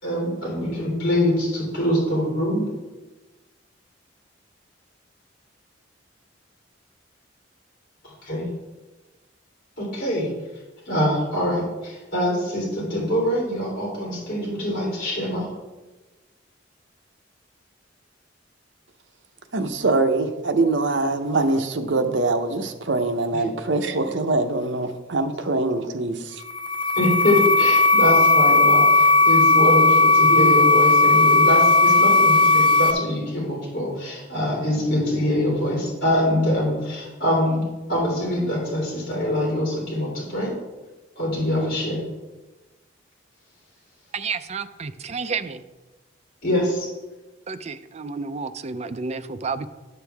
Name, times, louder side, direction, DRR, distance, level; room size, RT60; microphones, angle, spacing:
voice 1, 0.0-2.7 8.2-8.4 9.8-10.3 10.8-15.5 27.0-37.6 37.9-40.5 41.1-42.0 46.4-46.9, left 1 dB, 50° left, -5 dB, 3.2 m, -24 dB
voice 2, 19.5-26.4, right 2 dB, 65° right, 7 dB, 0.8 m, -23 dB
sound 1, 26.4-32.9, left 2 dB, 25° left, 0.7 m, -16 dB
voice 3, 44.1-45.6 47.5-49.7, right 5 dB, 35° right, 11 dB, 0.4 m, -30 dB
12.0 x 6.8 x 3.4 m, 1.1 s
head